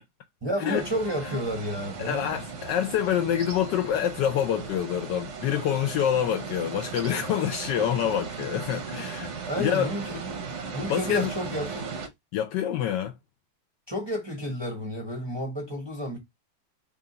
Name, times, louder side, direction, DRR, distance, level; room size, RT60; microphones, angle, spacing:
voice 1, 0.4-2.4 9.5-10.4 10.7-11.9 13.9-16.2, equal, 25° right, 0.5 m, -31 dB
sound 1, 0.7-12.1, right 5 dB, 55° right, 0.9 m, -37 dB
voice 2, 2.0-9.9 10.9-11.3 12.3-13.1, left 10 dB, 75° left, 1.1 m, -27 dB
3.4 x 2.4 x 3.7 m
omnidirectional pair, 2.0 m